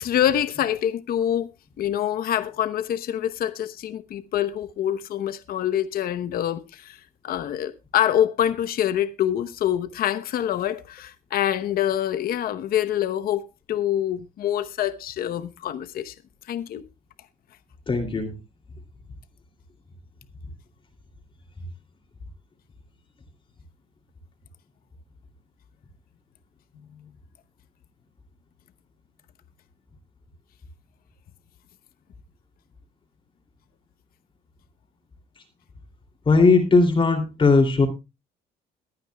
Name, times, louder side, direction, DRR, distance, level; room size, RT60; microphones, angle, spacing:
voice 1, 0.0-1.5 1.8-16.1 16.5-16.8, left 11 dB, 60° left, 1.0 m, -25 dB
voice 2, 17.9-18.3 36.3-37.9, left 3 dB, 30° left, 2.8 m, -18 dB
22.0 x 9.0 x 2.3 m
cardioid pair, 110°, 17 cm